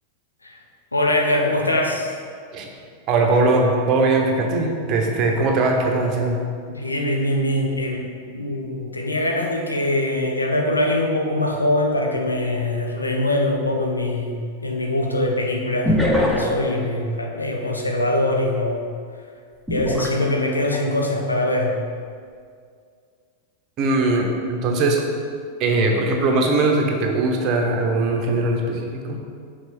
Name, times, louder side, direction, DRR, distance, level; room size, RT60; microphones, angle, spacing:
voice 1, 0.9-2.2 6.7-14.3 14.6-18.8 19.7-21.8, left 1 dB, 80° left, 1 dB, 0.6 m, -23 dB
voice 2, 3.1-6.4 23.8-25.0 25.6-29.2, right 2 dB, 35° right, 2 dB, 0.9 m, -20 dB
sound 1, 13.0-13.1 15.9-16.7 19.7-20.8 21.4-21.6, left 1 dB, 5° left, 0.8 m, -22 dB
6.2 x 3.7 x 5.3 m, 2.2 s
figure-of-eight pair, 90°, 0 cm